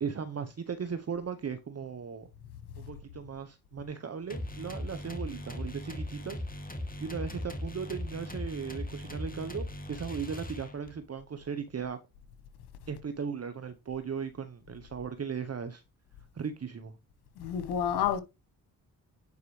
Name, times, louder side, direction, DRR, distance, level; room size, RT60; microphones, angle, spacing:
voice 1, 0.0-2.3 2.8-6.4 7.0-12.0 12.9-15.8 16.3-16.9, right 6 dB, 40° right, 1.0 m, -37 dB
sound 1, 4.3-11.0, left 1 dB, 20° left, 2.4 m, -39 dB
voice 2, 17.4-18.2, left 9 dB, 90° left, 1.2 m, -29 dB
9.5 x 4.7 x 3.2 m
supercardioid pair, 50°, 39 cm